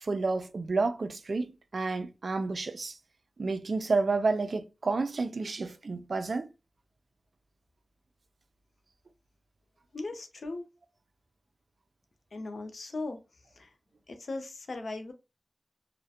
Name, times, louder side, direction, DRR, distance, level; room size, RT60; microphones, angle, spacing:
voice 1, 0.0-2.9 3.4-6.5, right 3 dB, 70° right, 0.3 m, -30 dB
voice 2, 9.9-10.6 12.3-13.2 13.6-13.7 14.1-15.1, left 2 dB, 85° left, 0.5 m, -38 dB
2.4 x 2.0 x 2.6 m
wide cardioid pair, 85°, 0 cm